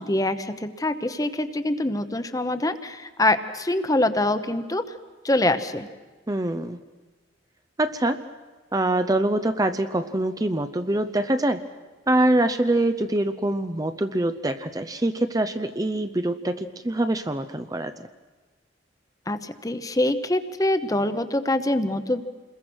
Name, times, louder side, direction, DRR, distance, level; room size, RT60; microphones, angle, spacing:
voice 1, 0.0-4.8 5.2-5.9 19.3-22.2, left 1 dB, 20° left, 10 dB, 1.0 m, -24 dB
voice 2, 6.3-6.8 7.8-8.2 8.7-11.6 12.1-17.9, right 1 dB, 20° right, 9 dB, 0.7 m, -24 dB
28.0 x 21.5 x 6.3 m, 1.3 s
head